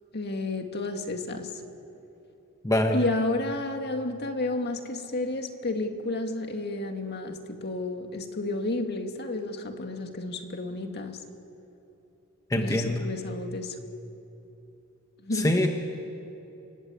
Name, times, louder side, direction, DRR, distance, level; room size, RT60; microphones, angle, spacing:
voice 1, 0.1-1.5 2.9-11.2 12.6-13.8 15.2-15.6, left 2 dB, 50° left, 5 dB, 2.0 m, -31 dB
voice 2, 2.6-3.0 12.5-13.0 15.3-15.7, left 1 dB, 15° left, 3 dB, 1.3 m, -24 dB
29.0 x 20.5 x 8.5 m, 3.0 s
head